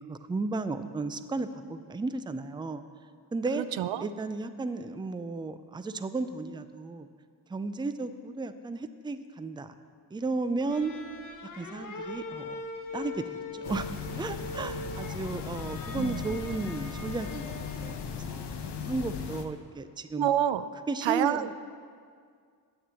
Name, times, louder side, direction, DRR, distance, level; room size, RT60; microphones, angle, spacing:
voice 1, 0.0-2.8 3.3-3.6 4.0-7.1 7.5-9.7 10.1-10.9 11.5-12.6 12.9-13.9 14.2-18.5 18.8-20.3 20.9-21.5, right 3 dB, 10° right, 11 dB, 0.4 m, -34 dB
voice 2, 3.6-4.1 16.0-16.3 20.2-20.6 21.0-21.5, right 11 dB, 80° right, 13 dB, 0.5 m, -28 dB
sound 1, 10.7-18.2, left 3 dB, 45° left, 1.2 m, -42 dB
sound 2, 13.6-19.4, left 6 dB, 65° left, 1.0 m, -37 dB
8.5 x 7.1 x 7.6 m, 2.1 s
cardioid pair, 75°, 44 cm